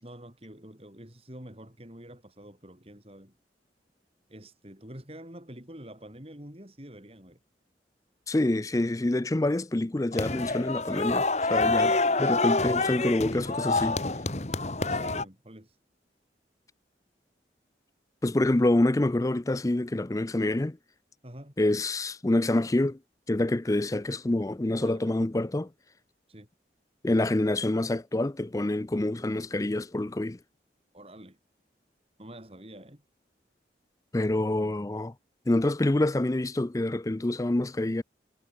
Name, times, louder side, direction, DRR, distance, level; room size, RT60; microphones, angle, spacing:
voice 1, 0.0-3.3 4.3-7.4 14.9-15.8 21.2-21.5 24.8-25.0 26.3-26.5 30.9-31.4 32.2-33.0, right 1 dB, 35° right, 5.0 m, -47 dB
voice 2, 8.3-14.0 18.2-20.8 21.6-23.0 23.3-25.7 27.0-30.4 34.1-35.1 35.5-38.0, left 1 dB, 20° left, 0.5 m, -26 dB
sound 1, 10.1-15.2, left 3 dB, 40° left, 1.6 m, -27 dB
head